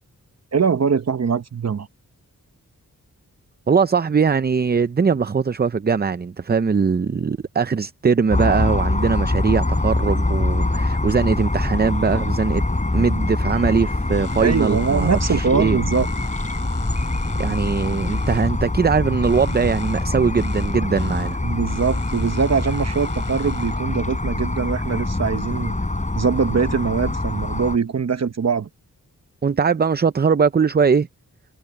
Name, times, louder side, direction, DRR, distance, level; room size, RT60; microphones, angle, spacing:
voice 1, 0.5-1.9 14.4-16.1 21.4-25.8 26.1-28.7, right 6 dB, 50° right, 0.9 m, -22 dB
voice 2, 3.7-12.6 12.9-15.8 17.4-21.4 29.4-31.1, right 5 dB, 30° right, 0.5 m, -21 dB
sound 1, 8.3-27.8, left 2 dB, 20° left, 4.7 m, -24 dB
sound 2, 14.2-24.0, left 5 dB, 65° left, 7.9 m, -44 dB
wide cardioid pair, 90°, 34 cm